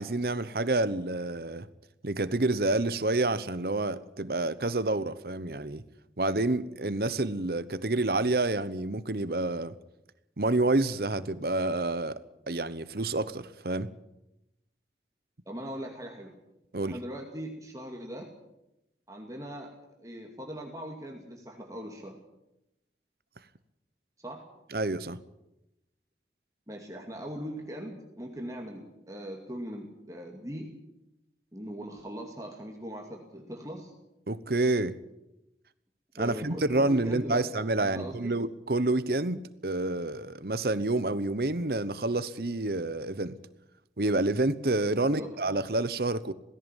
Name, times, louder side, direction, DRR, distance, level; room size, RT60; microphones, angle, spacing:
voice 1, 0.0-1.7 2.0-5.8 6.2-9.7 10.4-13.9 16.7-17.0 24.7-25.2 34.3-35.0 36.2-43.4 44.0-46.3, right 2 dB, 60° right, 15 dB, 1.0 m, -28 dB
voice 2, 15.5-16.3 16.8-18.3 19.1-19.7 20.0-22.2 24.2-24.4 26.7-30.7 31.5-33.9 36.1-38.4 44.9-45.3, equal, 20° right, 1 dB, 2.4 m, -40 dB
17.5 x 16.5 x 9.1 m, 0.89 s
head